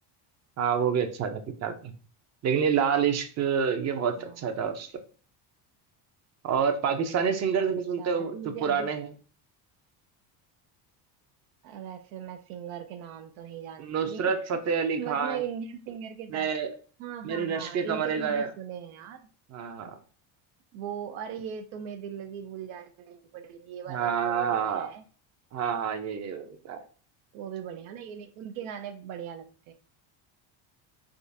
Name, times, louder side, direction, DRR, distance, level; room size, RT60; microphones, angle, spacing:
voice 1, 0.6-1.9 2.4-4.9 6.4-9.1 13.8-15.4 16.3-16.7 17.2-18.5 19.5-19.9 23.9-24.9 25.5-26.8, right 7 dB, 35° right, 0.5 m, -28 dB
voice 2, 4.2-4.7 7.6-8.9 11.6-14.4 15.0-16.5 17.0-19.2 20.7-25.0 27.3-29.7, right 8 dB, 90° right, 0.6 m, -39 dB
3.6 x 2.4 x 2.6 m
cardioid pair, 125°, 48 cm